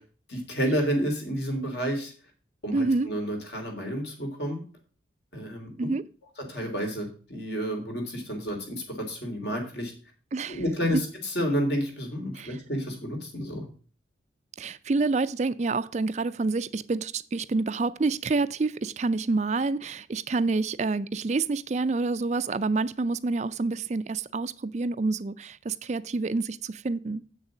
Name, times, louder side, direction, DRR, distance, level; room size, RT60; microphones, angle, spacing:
voice 1, 0.3-2.1 2.6-4.6 5.3-5.9 6.5-9.9 10.5-13.7, equal, 60° left, 3.3 m, -30 dB
voice 2, 2.7-3.1 5.8-6.0 10.3-10.6 12.3-12.6 14.6-27.2, right 3 dB, 35° right, 0.4 m, -28 dB
7.9 x 6.5 x 6.1 m
head